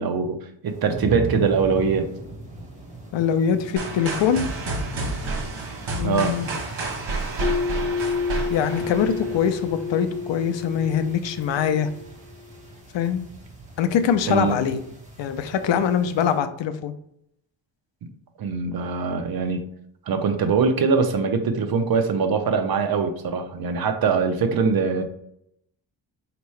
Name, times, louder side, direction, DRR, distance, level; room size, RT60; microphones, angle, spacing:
voice 1, 0.0-2.1 6.0-6.4 14.3-14.6 18.4-19.7 20.1-25.0, right 5 dB, 55° right, 6 dB, 0.6 m, -22 dB
sound 1, 0.6-16.4, right 3 dB, 15° right, 1.1 m, -39 dB
voice 2, 3.1-4.5 6.0-6.5 8.5-11.9 12.9-13.3 13.8-14.8 15.2-16.9, left 8 dB, 75° left, 10 dB, 0.6 m, -23 dB
sound 2, 3.8-9.7, right 3 dB, 90° right, 1.2 m, -30 dB
sound 3, 7.4-12.1, left 5 dB, 20° left, 0.3 m, -30 dB
4.5 x 2.9 x 3.1 m, 0.76 s
wide cardioid pair, 150°, 45 cm